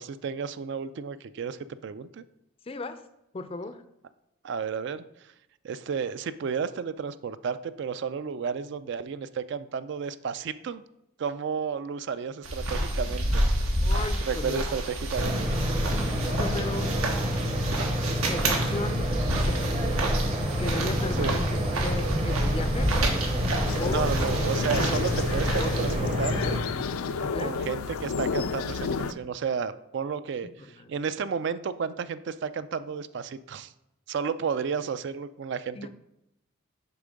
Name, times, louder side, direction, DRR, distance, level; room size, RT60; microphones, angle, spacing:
voice 1, 0.0-2.2 4.4-5.0 5.6-10.8 11.2-13.4 14.3-15.6 16.0-16.1 21.1-21.4 23.8-26.4 27.2-33.7 34.1-35.8, right 6 dB, 55° right, 14 dB, 0.3 m, -32 dB
voice 2, 2.7-3.0 3.3-3.8 13.8-14.7 16.3-17.0 18.1-19.6 20.6-23.0 23.8-24.1 24.7-25.0 25.5-25.8 27.2-27.6 30.6-30.9 35.7-35.9, left 3 dB, 25° left, 12 dB, 0.4 m, -35 dB
sound 1, 12.4-26.0, right 1 dB, 85° right, 1.3 m, -29 dB
sound 2, 15.2-26.6, equal, 25° right, 0.7 m, -28 dB
sound 3, 23.7-29.1, left 5 dB, 85° left, 0.4 m, -31 dB
6.9 x 4.5 x 5.1 m, 0.85 s
head